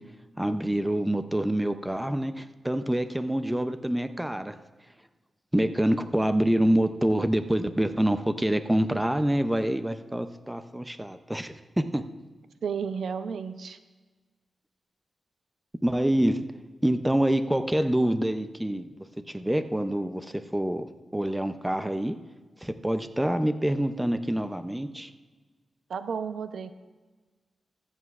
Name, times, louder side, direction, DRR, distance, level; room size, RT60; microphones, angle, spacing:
voice 1, 0.4-4.6 5.5-12.1 15.8-16.5 16.8-18.9 19.3-20.9 21.1-22.2 22.6-25.1, right 1 dB, 5° right, 10 dB, 0.4 m, -26 dB
voice 2, 12.6-13.8 25.9-26.7, right 6 dB, 85° right, 10 dB, 0.5 m, -32 dB
23.5 x 8.0 x 2.4 m, 1.3 s
wide cardioid pair, 170°, 0 cm